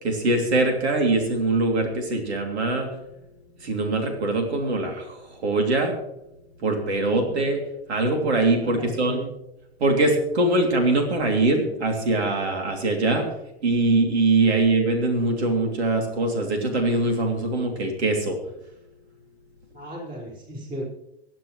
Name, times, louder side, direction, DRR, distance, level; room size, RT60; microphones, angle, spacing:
voice 1, 0.0-2.9 3.6-5.9 6.6-7.6 7.9-9.2 9.8-13.3 13.6-18.4, right 2 dB, 85° right, 2 dB, 3.0 m, -22 dB
voice 2, 8.6-9.2 19.7-20.9, equal, 25° right, -4 dB, 5.2 m, -35 dB
24.0 x 10.5 x 3.2 m, 0.86 s
hypercardioid pair, 125°, 32 cm